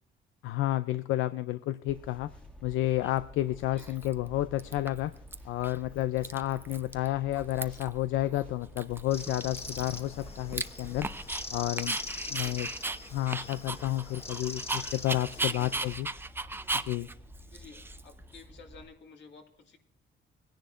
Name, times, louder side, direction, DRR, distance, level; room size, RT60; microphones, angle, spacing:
voice 1, 0.4-2.3 2.6-5.1 5.4-11.1 11.5-12.0 12.3-12.7 13.1-16.1 16.7-17.1, left 15 dB, 90° left, 13 dB, 0.4 m, -31 dB
sound 1, 1.9-18.9, equal, 5° left, 1.6 m, -50 dB
Dog, 3.0-3.1 3.8-4.3 4.6-5.3 5.6-5.8 6.0-7.1 7.3-8.0 8.3-8.4 8.8-11.4 11.8-18.4, right 2 dB, 10° right, 0.5 m, -36 dB
sound 2, 9.1-16.0, left 3 dB, 30° left, 1.3 m, -43 dB
voice 2, 12.0-12.6 15.4-15.8 17.5-19.8, left 5 dB, 65° left, 3 dB, 2.1 m, -53 dB
19.0 x 10.0 x 2.5 m, 0.63 s
cardioid pair, 90°, 20 cm